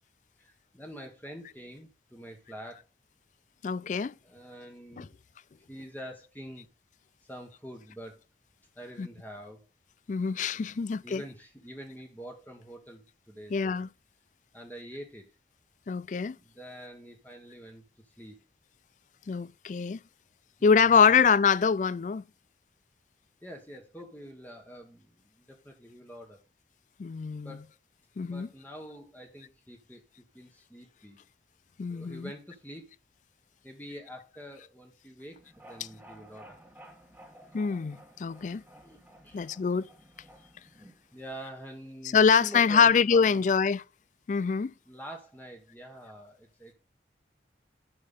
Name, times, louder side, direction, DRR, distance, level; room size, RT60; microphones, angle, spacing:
voice 1, 0.4-2.8 4.2-5.1 5.7-6.7 7.3-8.2 8.7-9.7 10.5-13.8 14.5-15.3 16.4-18.4 20.6-21.2 23.4-26.4 27.4-27.7 28.2-30.0 30.3-31.2 31.9-32.9 33.6-36.6 38.8-39.5 41.1-43.5 44.9-46.7, equal, 10° left, 1.4 m, -46 dB
voice 2, 3.6-4.1 5.0-5.1 9.0-9.1 10.1-11.2 13.5-13.9 15.9-16.4 19.3-20.0 20.6-22.2 27.0-27.6 28.2-28.5 31.8-32.3 37.5-38.6 39.3-39.9 42.1-43.8 44.3-44.7, left 6 dB, 40° left, 0.3 m, -24 dB
sound 1, 35.3-41.4, right 1 dB, 10° right, 1.4 m, -54 dB
10.5 x 5.7 x 3.7 m
head